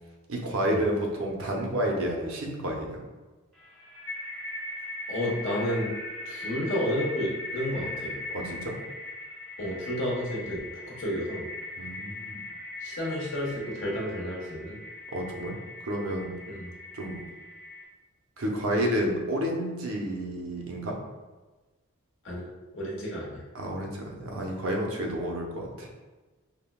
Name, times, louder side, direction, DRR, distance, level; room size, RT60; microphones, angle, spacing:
voice 1, 0.3-3.1 8.3-8.7 11.8-12.4 15.1-15.5 15.8-16.3 16.9-17.2 18.4-21.0 23.5-25.9, right 1 dB, 80° right, 0 dB, 0.7 m, -30 dB
sound 1, 3.6-17.9, left 1 dB, 5° left, 0.8 m, -40 dB
voice 2, 5.1-5.9 6.2-8.1 9.6-11.5 12.8-14.8 16.5-16.7 22.2-22.4 22.7-23.4, equal, 60° left, -5 dB, 1.1 m, -31 dB
5.5 x 2.1 x 2.3 m, 1.2 s
head